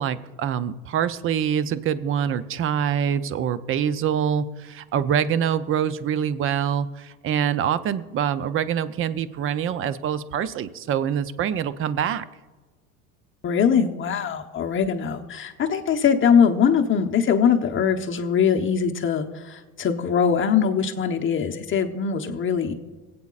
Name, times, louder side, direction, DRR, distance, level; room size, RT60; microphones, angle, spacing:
voice 1, 0.0-12.2, right 8 dB, 30° right, 14 dB, 0.6 m, -25 dB
voice 2, 13.4-22.7, left 7 dB, 25° left, 4 dB, 1.0 m, -22 dB
25.5 x 8.6 x 2.5 m, 1.3 s
hypercardioid pair, 95°, 44 cm